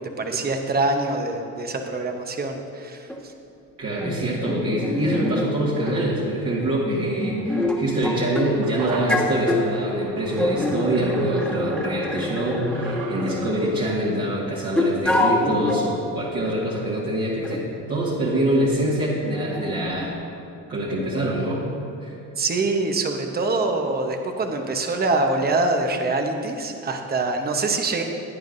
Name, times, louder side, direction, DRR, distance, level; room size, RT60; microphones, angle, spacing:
voice 1, 0.0-3.1 22.4-28.0, right 3 dB, 30° right, 4 dB, 1.0 m, -24 dB
sound 1, 3.1-3.2 4.0-5.5 5.9-6.0 6.9-8.5 8.9-9.7 10.4-13.9 14.8-15.9 16.5-16.6 17.4-17.6 19.2-20.1, left 1 dB, 5° left, 1.5 m, -26 dB
voice 2, 3.8-20.2 20.7-21.6 22.0-22.2, right 1 dB, 50° right, -7 dB, 1.9 m, -25 dB
sound 2, 8.1-16.6 16.8-16.9, right 4 dB, 70° right, 1.1 m, -40 dB
16.0 x 9.2 x 2.6 m, 2.6 s
cardioid pair, 100°, 32 cm